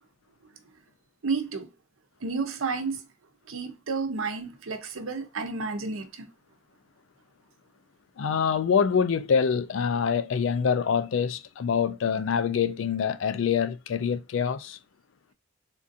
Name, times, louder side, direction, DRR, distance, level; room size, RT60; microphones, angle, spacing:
voice 1, 1.2-1.7 2.2-3.0 3.5-6.3, right 4 dB, 85° right, 0.7 m, -31 dB
voice 2, 8.2-14.8, left 6 dB, 70° left, 0.3 m, -25 dB
3.6 x 2.5 x 2.6 m
head